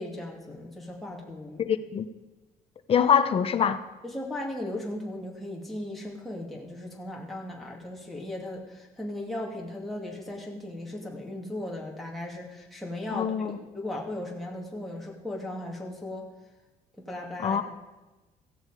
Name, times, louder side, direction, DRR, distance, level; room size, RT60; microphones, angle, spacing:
voice 1, 0.0-1.6 4.0-16.2 17.0-17.6, left 1 dB, ahead, -3 dB, 2.3 m, -37 dB
voice 2, 1.6-2.1 2.9-3.8 13.1-13.6 17.4-17.6, left 7 dB, 40° left, 11 dB, 0.9 m, -24 dB
16.5 x 15.0 x 4.9 m, 1.1 s
cardioid pair, 155°, 15 cm